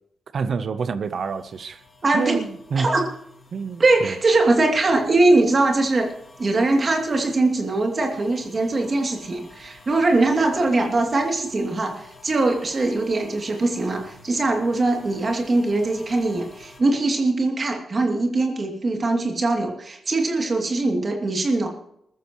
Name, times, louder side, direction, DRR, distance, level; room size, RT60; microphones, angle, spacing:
voice 1, 0.3-1.8 2.1-3.0 3.5-4.2, right 5 dB, 55° right, 0.8 m, -27 dB
sound 1, 1.0-16.8, left 3 dB, 20° left, 3.5 m, -50 dB
voice 2, 2.0-2.4 2.8-3.0 3.8-6.1 6.4-21.7, right 2 dB, 35° right, 2.7 m, -21 dB
20.5 x 14.0 x 3.1 m
wide cardioid pair, 135°, 0 cm